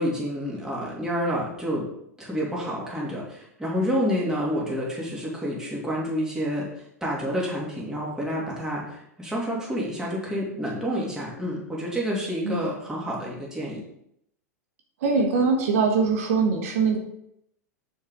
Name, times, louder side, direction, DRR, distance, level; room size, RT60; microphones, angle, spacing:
voice 1, 0.0-1.8 2.2-6.7 7.0-13.8, equal, 5° right, -5 dB, 2.8 m, -29 dB
voice 2, 15.0-17.0, right 4 dB, 55° right, 3 dB, 1.3 m, -22 dB
7.1 x 6.3 x 3.8 m, 0.76 s
figure-of-eight pair, 90°, 9 cm